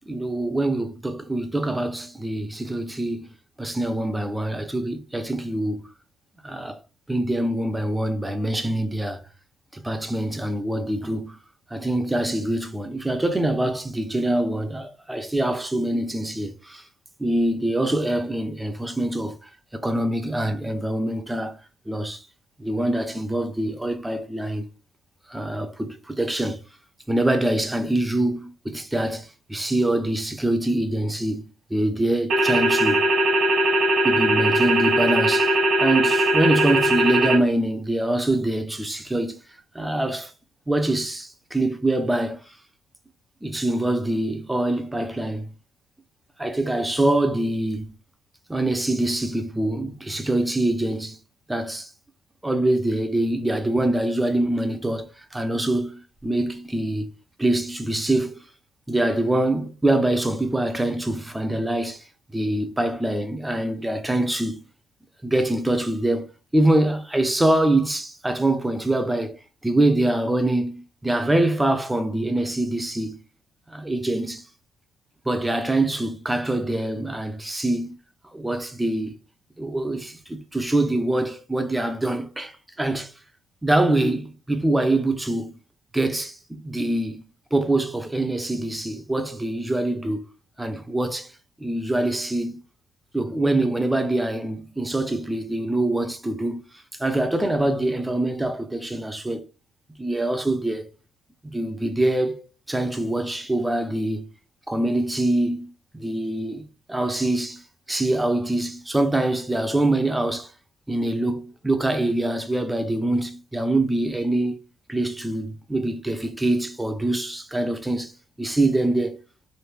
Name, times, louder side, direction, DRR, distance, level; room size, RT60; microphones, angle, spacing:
voice 1, 0.1-5.9 6.4-6.8 7.1-9.2 9.7-11.4 11.7-16.8 17.2-21.6 21.9-22.3 22.6-24.7 25.3-26.6 27.1-31.4 31.7-33.1 34.0-39.4 39.7-40.3 40.7-42.4 43.4-45.5 46.4-48.0 48.5-51.2 51.5-51.9 52.4-57.1 57.4-58.4 58.9-62.0 62.3-64.7 65.2-69.4 69.6-73.2 73.7-74.4 75.3-78.0 78.3-79.2 79.6-83.1 83.6-85.6 85.9-87.2 87.5-90.3 90.6-91.3 91.6-92.6 93.1-99.5 100.0-100.9 101.4-104.3 104.7-106.6 106.9-107.6 107.9-110.5 110.9-114.6 114.9-118.1 118.4-119.2, right 1 dB, 10° right, 0.5 m, -24 dB
sound 1, 32.3-37.4, right 1 dB, 70° right, 1.1 m, -20 dB
3.3 x 2.1 x 3.1 m
cardioid pair, 100°, 0 cm